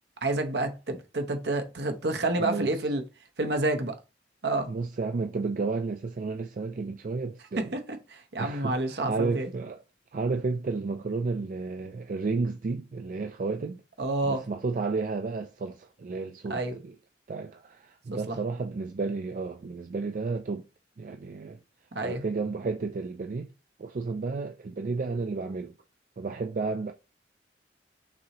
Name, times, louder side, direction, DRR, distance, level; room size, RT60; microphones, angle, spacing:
voice 1, 0.2-3.0 3.4-4.0 4.4-4.7 7.6-9.5 14.0-14.4 16.5-16.8 18.1-18.4 21.9-22.2, right 2 dB, 65° right, 0.8 m, -29 dB
voice 2, 2.4-2.7 4.7-7.8 8.4-9.8 10.1-13.8 14.2-16.9 17.3-20.7 21.0-21.6 22.0-23.5 23.8-25.7 26.2-26.9, right 4 dB, 45° right, 0.3 m, -32 dB
6.0 x 2.7 x 3.0 m
head